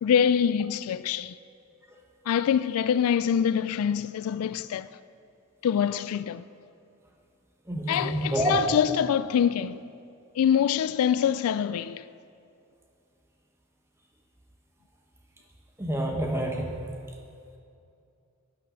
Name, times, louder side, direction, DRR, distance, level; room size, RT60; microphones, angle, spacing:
voice 1, 0.0-1.4 2.3-4.9 5.6-6.4 7.9-9.8 10.3-12.0, left 8 dB, 75° left, 0.3 m, -25 dB
voice 2, 7.7-8.6 15.8-16.7, right 1 dB, 10° right, 1.1 m, -27 dB
11.0 x 9.1 x 6.3 m
head